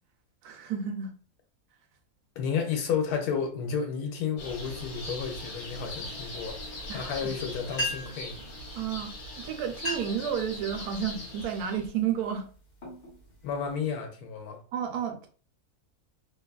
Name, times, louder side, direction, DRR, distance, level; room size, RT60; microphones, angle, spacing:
voice 1, 0.4-1.1 6.9-7.3 8.7-9.1 9.4-12.5 14.7-15.3, right 8 dB, 85° right, 1.1 m, -31 dB
voice 2, 2.4-6.6 6.9-8.4 13.4-14.6, left 6 dB, 85° left, 1.2 m, -32 dB
sound 1, 4.4-11.9, left 1 dB, 60° left, 1.3 m, -41 dB
sound 2, 7.7-8.3 9.2-9.3 9.7-10.3 10.8-11.1 11.7-12.0 12.5-13.8, left 1 dB, 40° left, 1.0 m, -35 dB
2.9 x 2.2 x 2.3 m
omnidirectional pair, 1.6 m